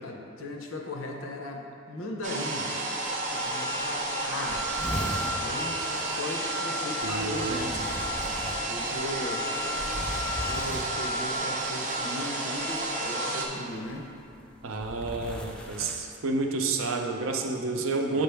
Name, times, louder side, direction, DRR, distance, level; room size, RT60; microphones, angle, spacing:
voice 1, 0.0-2.7 3.3-4.7 5.4-8.1 8.7-9.4 10.5-14.1 17.7-18.2, left 1 dB, 75° left, 2 dB, 0.7 m, -37 dB
sound 1, 2.2-13.5, right 1 dB, 40° right, 0.7 m, -31 dB
sound 2, 3.1-3.2 3.4-3.5 3.8-3.9 4.1-5.4 6.9-11.4 12.6-12.9 13.8-16.0, equal, 5° left, 0.4 m, -38 dB
voice 2, 7.0-7.7 14.6-18.2, right 3 dB, 75° right, 3 dB, 0.5 m, -30 dB
6.1 x 5.4 x 3.4 m, 2.7 s
head